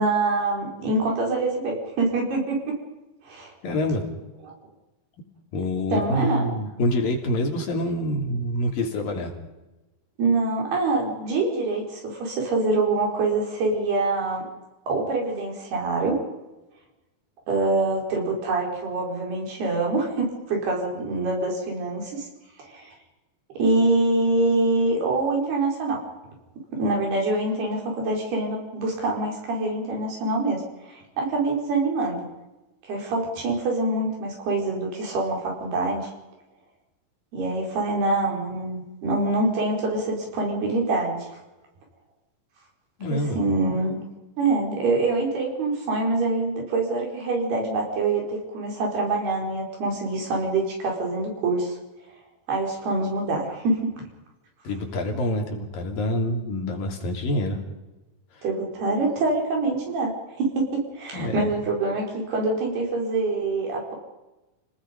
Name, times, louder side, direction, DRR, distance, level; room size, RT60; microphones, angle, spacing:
voice 1, 0.0-2.8 3.2-3.5 4.5-4.6 5.9-6.4 10.2-14.5 14.9-16.2 17.5-22.3 22.6-22.9 23.6-26.0 26.7-32.3 32.8-36.1 37.3-41.2 43.1-44.0 44.4-51.7 52.5-53.9 58.4-60.1 60.4-63.9, right 2 dB, 90° right, 0 dB, 7.1 m, -25 dB
voice 2, 3.6-4.0 5.5-9.3 43.0-43.4 54.6-57.6 58.3-58.4 61.1-61.5, left 1 dB, 65° left, 2 dB, 4.6 m, -26 dB
30.0 x 19.0 x 5.4 m, 1.0 s
omnidirectional pair, 4.4 m